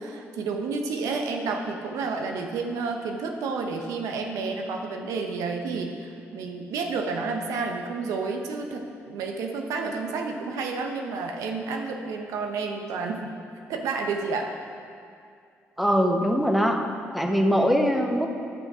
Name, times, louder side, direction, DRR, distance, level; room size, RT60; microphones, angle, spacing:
voice 1, 0.0-13.3 13.7-14.5, right 4 dB, 80° right, 3 dB, 0.8 m, -30 dB
voice 2, 15.8-16.8 17.1-18.3, equal, ahead, 3 dB, 1.1 m, -22 dB
11.5 x 5.3 x 4.8 m, 2.4 s
supercardioid pair, 60°, 6 cm